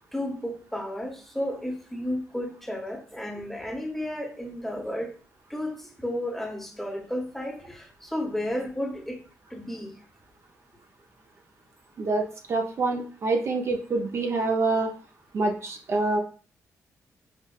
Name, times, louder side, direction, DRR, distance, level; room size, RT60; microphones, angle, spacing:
voice 1, 0.1-5.2 5.5-9.2 9.5-9.9, left 1 dB, 5° left, 0.7 m, -33 dB
voice 2, 12.0-14.9 15.3-16.2, right 3 dB, 50° right, 0.5 m, -26 dB
5.0 x 2.1 x 2.3 m
cardioid pair, 85°, 6 cm